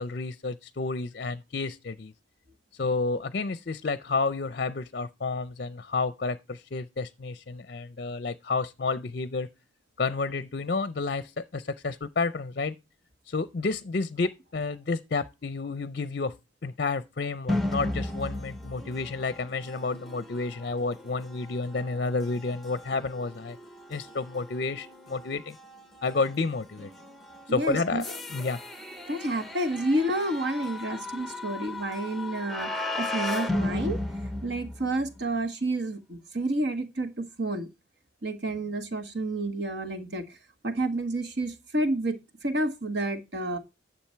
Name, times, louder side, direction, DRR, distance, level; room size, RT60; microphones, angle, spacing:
voice 1, 0.0-2.1 2.7-9.5 10.0-12.7 13.3-16.3 16.6-23.6 23.9-25.6 26.0-26.9 27.5-28.6, left 3 dB, 50° left, 0.5 m, -30 dB
sound 1, 17.5-35.2, left 1 dB, ahead, 0.8 m, -36 dB
voice 2, 27.5-28.0 29.1-32.7 33.0-34.0 34.4-37.7 38.2-40.2 40.6-43.6, right 1 dB, 60° right, 1.5 m, -29 dB
10.5 x 7.2 x 4.5 m
head